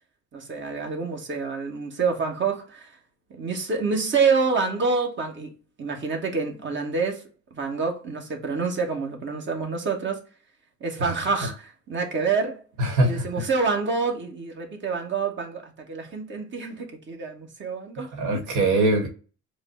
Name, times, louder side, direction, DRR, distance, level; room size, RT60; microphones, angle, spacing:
voice 1, 0.3-2.9 3.3-10.2 10.8-12.6 13.0-18.1, right 4 dB, 40° right, 1.1 m, -27 dB
voice 2, 12.8-13.3 18.1-19.1, right 2 dB, 85° right, 1.0 m, -22 dB
4.8 x 2.1 x 4.1 m
cardioid pair, 90°, 30 cm